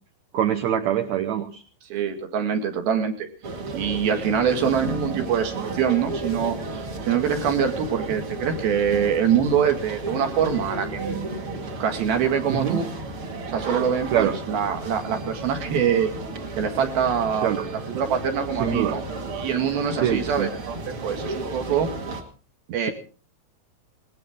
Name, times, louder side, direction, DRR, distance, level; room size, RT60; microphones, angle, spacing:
voice 1, 0.3-1.6 12.5-12.8 14.1-14.4 17.4-17.7 18.6-18.9 19.9-20.5 22.8-22.9, right 9 dB, 65° right, 6 dB, 2.0 m, -24 dB
voice 2, 1.9-3.3 3.7-11.3 11.8-12.9 13.5-16.1 16.6-19.0 19.3-21.9 22.7-22.9, right 7 dB, 80° right, 5 dB, 3.9 m, -24 dB
sound 1, 3.4-22.2, right 2 dB, 40° right, 2.5 m, -33 dB
19.5 x 19.0 x 3.7 m, 0.38 s
omnidirectional pair, 4.3 m